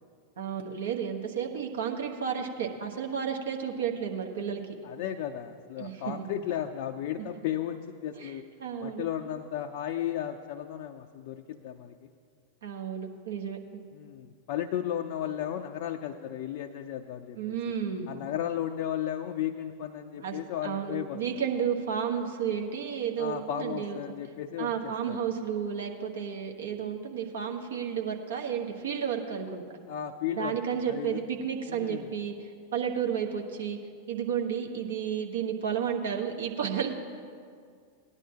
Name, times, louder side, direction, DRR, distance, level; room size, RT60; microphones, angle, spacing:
voice 1, 0.4-4.7 5.8-6.3 8.2-8.3 8.6-9.0 12.6-13.8 17.4-18.1 20.2-24.0 24.6-29.6 30.4-33.8 34.1-36.9, right 7 dB, 65° right, 2 dB, 1.3 m, -32 dB
voice 2, 4.8-8.4 8.8-12.1 13.9-17.6 18.1-21.2 23.2-25.2 29.9-30.6 30.9-31.2 31.7-32.1, left 10 dB, 50° left, 4 dB, 0.5 m, -34 dB
18.0 x 10.5 x 2.9 m, 2.1 s
figure-of-eight pair, 90°, 0 cm